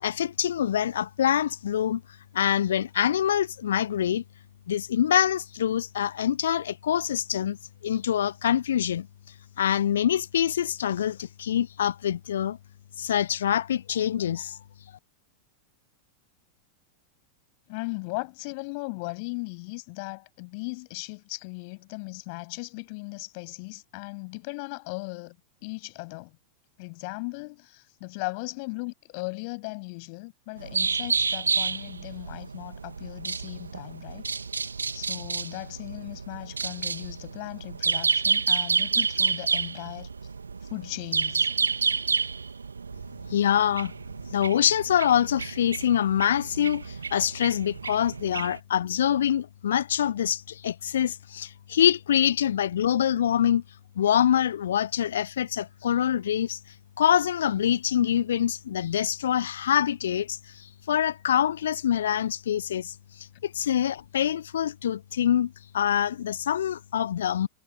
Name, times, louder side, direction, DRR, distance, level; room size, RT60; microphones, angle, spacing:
voice 1, 0.0-2.0 2.3-4.2 4.7-7.6 7.8-9.1 9.6-12.6 13.0-14.6 43.3-43.9 44.3-53.6 54.0-56.6 57.0-60.4 60.9-62.9 63.4-67.5, left 10 dB, 65° left, 0.8 m, -25 dB
voice 2, 17.7-25.4 25.6-26.4 26.8-34.2 34.9-40.1 40.7-41.5, left 32 dB, 45° left, 7.6 m, -37 dB
sound 1, 30.6-48.6, right 5 dB, 75° right, 2.9 m, -30 dB
figure-of-eight pair, 90°, 0 cm